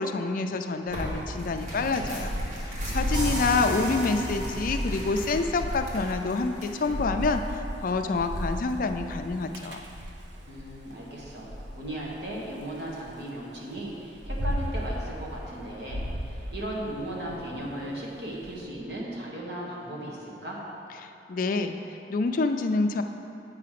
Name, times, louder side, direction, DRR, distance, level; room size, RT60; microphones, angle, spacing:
voice 1, 0.0-2.3 2.6-9.8 21.0-21.8 22.1-23.0, left 3 dB, 50° left, 7 dB, 0.4 m, -27 dB
Tearing, 0.9-7.0, equal, 45° right, 1.5 m, -40 dB
Thunder / Rain, 1.0-10.7 11.2-13.1 13.7-18.5, equal, 90° right, 0.8 m, -35 dB
voice 2, 2.7-4.0 10.4-20.6, right 1 dB, 70° right, -4 dB, 1.7 m, -37 dB
sound 1, 3.1-6.7, equal, 25° right, 1.8 m, -35 dB
8.3 x 4.9 x 5.9 m, 2.7 s
head